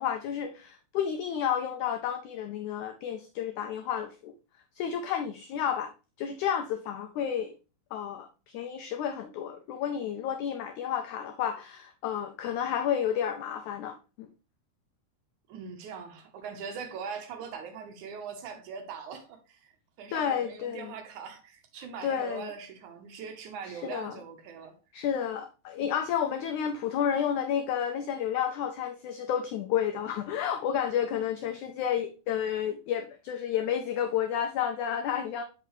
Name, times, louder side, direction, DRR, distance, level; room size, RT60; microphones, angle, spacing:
voice 1, 0.0-4.3 4.8-5.9 6.2-7.5 7.9-14.3 20.1-20.9 22.0-22.5 23.6-24.1 24.9-35.4, left 9 dB, 85° left, 1.7 m, -31 dB
voice 2, 15.5-19.7 20.0-24.7, right 6 dB, 70° right, 2.0 m, -41 dB
6.7 x 5.5 x 3.1 m
omnidirectional pair, 4.2 m